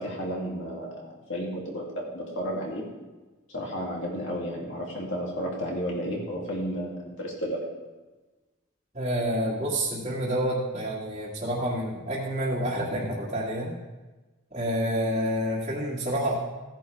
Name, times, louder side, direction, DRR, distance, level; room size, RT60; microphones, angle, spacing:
voice 1, 0.0-2.9 3.5-7.6, equal, 60° left, -2 dB, 2.7 m, -32 dB
voice 2, 8.9-13.7 14.5-16.3, right 1 dB, 30° right, -8 dB, 2.0 m, -28 dB
16.0 x 10.0 x 3.5 m, 1.2 s
head